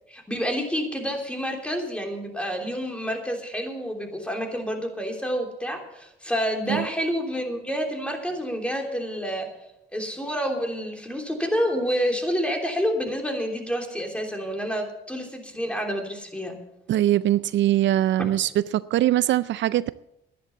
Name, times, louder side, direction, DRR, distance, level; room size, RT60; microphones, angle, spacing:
voice 1, 0.1-9.5 9.9-16.5, equal, 5° left, 3.1 m, -28 dB
voice 2, 16.9-19.9, right 13 dB, 70° right, 0.4 m, -22 dB
11.0 x 11.0 x 6.9 m
cardioid pair, 90°, 20 cm